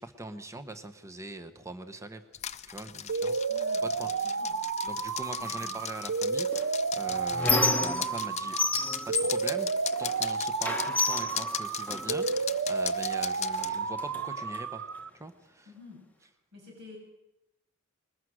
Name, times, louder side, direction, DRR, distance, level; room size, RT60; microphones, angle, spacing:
voice 1, 0.0-2.2 2.7-3.4 3.8-4.4 4.8-8.6 9.1-9.7 10.0-14.8 15.1-15.7, right 2 dB, 15° right, 8 dB, 1.1 m, -42 dB
sound 1, 2.3-13.7, left 10 dB, 30° left, 0.7 m, -38 dB
sound 2, 3.1-15.1, right 5 dB, 80° right, 0.7 m, -31 dB
voice 2, 3.5-4.5 5.4-5.7 15.7-16.0 16.5-17.0, left 3 dB, 55° right, -1 dB, 7.7 m, -49 dB
Squeak, 6.5-8.3 8.6-10.2 10.6-12.3 13.1-13.2 13.6-14.6, left 2 dB, 10° left, 1.1 m, -30 dB
21.5 x 20.0 x 6.4 m, 0.90 s
head